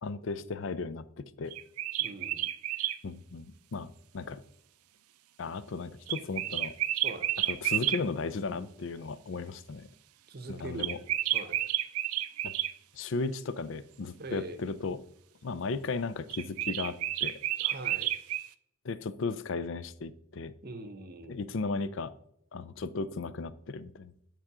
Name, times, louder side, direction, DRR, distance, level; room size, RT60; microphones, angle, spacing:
voice 1, 0.0-1.5 3.0-4.4 5.4-6.7 7.5-9.9 10.5-11.0 12.4-12.5 12.9-15.0 15.4-17.3 18.8-20.5 21.3-22.1 22.5-24.1, left 4 dB, 60° left, 16 dB, 0.4 m, -35 dB
sound 1, 1.5-3.0 6.1-8.0 10.8-12.7 16.3-18.5, right 14 dB, 85° right, 0.4 m, -31 dB
voice 2, 2.0-2.5 7.0-7.3 10.3-10.9 11.3-11.6 14.2-14.6 17.6-18.1 20.6-21.4, right 2 dB, 45° right, 10 dB, 0.7 m, -42 dB
9.9 x 3.7 x 4.8 m, 0.74 s
head